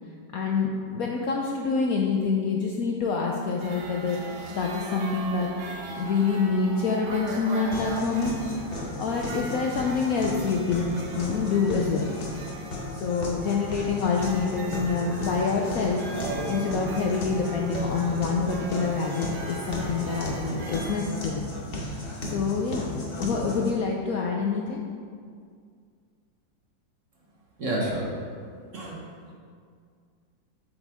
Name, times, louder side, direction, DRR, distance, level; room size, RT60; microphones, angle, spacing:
voice 1, 0.3-4.2 4.5-5.5 6.0-8.3 9.0-12.1 13.0-16.0 16.5-21.5 22.3-22.9 23.2-24.8, left 5 dB, 70° left, 0 dB, 0.9 m, -26 dB
sound 1, 3.6-21.0, right 3 dB, 75° right, 1.7 m, -39 dB
sound 2, 7.7-23.7, left 2 dB, 40° left, 1.0 m, -35 dB
voice 2, 27.6-28.1 28.7-29.3, right 1 dB, 45° right, -3 dB, 1.3 m, -30 dB
8.0 x 7.1 x 3.5 m, 2.1 s
omnidirectional pair, 2.0 m